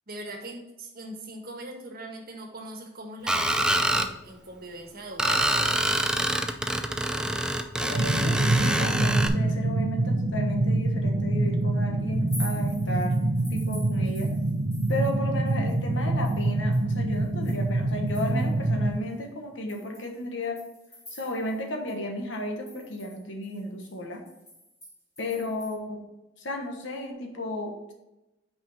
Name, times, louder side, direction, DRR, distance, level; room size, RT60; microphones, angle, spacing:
voice 1, 0.1-5.7, right 1 dB, 50° right, 2 dB, 1.4 m, -41 dB
Screech, 3.3-4.1 5.2-9.3, right 1 dB, 5° right, 0.4 m, -26 dB
voice 2, 7.8-13.1 13.5-14.3 14.9-20.6 21.1-24.2 25.2-26.0 26.4-27.9, left 1 dB, 70° left, 2 dB, 1.2 m, -33 dB
sound 1, 7.9-18.9, right 2 dB, 80° right, 0.8 m, -26 dB
sound 2, 12.1-15.2 15.5-18.7 19.1-19.2 19.7-21.6 21.9-22.0 22.3-25.7, left 1 dB, 15° left, 2.4 m, -47 dB
5.9 x 5.0 x 4.1 m, 0.98 s
head